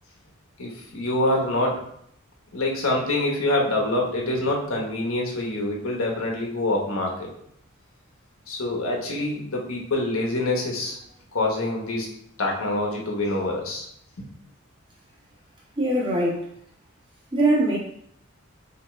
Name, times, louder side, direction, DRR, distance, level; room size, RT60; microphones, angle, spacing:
voice 1, 0.6-1.8 2.5-7.3 8.5-11.0 11.3-12.1 12.4-13.9, left 2 dB, 80° left, -1 dB, 1.0 m, -25 dB
voice 2, 15.8-16.5 17.3-17.8, right 1 dB, 25° right, -6 dB, 1.2 m, -22 dB
4.3 x 2.8 x 3.1 m, 0.69 s
head